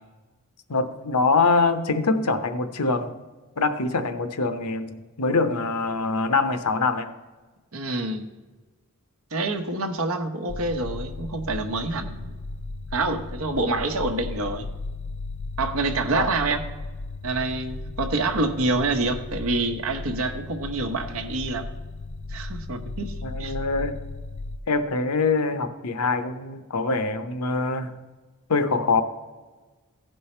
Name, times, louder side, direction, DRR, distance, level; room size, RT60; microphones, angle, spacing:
voice 1, 0.7-3.1 3.6-7.1 16.1-16.2 23.2-24.0 24.7-27.9 28.5-29.0, left 3 dB, 85° left, 10 dB, 0.9 m, -24 dB
voice 2, 7.7-8.2 9.3-12.3 12.9-14.7 15.6-16.6 17.2-21.6 22.3-23.5, right 2 dB, 65° right, 5 dB, 1.0 m, -27 dB
sound 1, 10.5-24.6, left 3 dB, 55° left, 0.5 m, -36 dB
15.5 x 5.5 x 4.3 m, 1.3 s
head